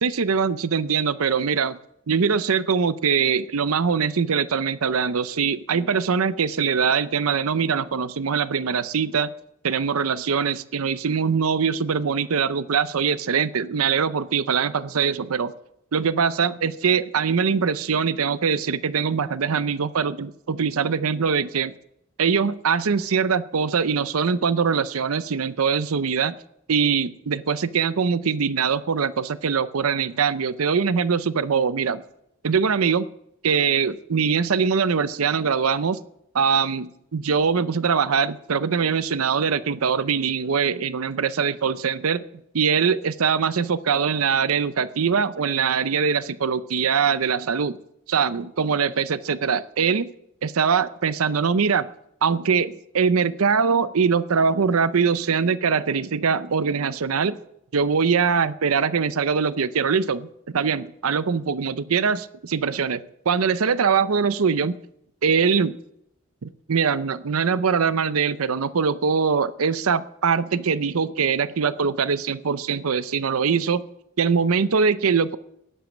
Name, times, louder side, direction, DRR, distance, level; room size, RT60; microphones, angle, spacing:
voice 1, 0.0-1.8 2.1-9.3 9.6-15.5 15.9-21.7 22.2-26.3 26.7-32.0 32.4-33.1 33.4-36.0 36.3-42.2 42.5-47.8 48.1-50.1 50.4-51.9 52.2-57.4 57.7-60.3 60.5-64.8 65.2-65.8 66.4-73.8 74.2-75.4, right 6 dB, 85° right, 16 dB, 0.6 m, -22 dB
12.5 x 10.5 x 7.2 m, 0.76 s
head